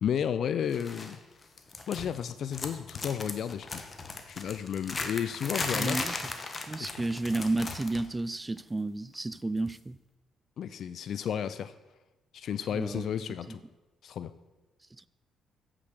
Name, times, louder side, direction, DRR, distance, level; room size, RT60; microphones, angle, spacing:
voice 1, 0.0-1.2 1.9-3.9 4.3-6.1 6.8-7.0 10.6-11.7 12.3-13.6 14.0-14.3, left 8 dB, 65° left, 0.4 m, -32 dB
sound 1, 0.7-1.2 1.4-2.2 2.5-8.1 8.3-8.6 9.7-9.8, left 3 dB, 30° left, 1.0 m, -37 dB
voice 2, 5.7-6.2 6.7-10.0 12.7-13.1 13.5-13.6 15.0-15.1, right 2 dB, 15° right, 0.3 m, -32 dB
8.0 x 6.0 x 6.3 m
cardioid pair, 90°, 0 cm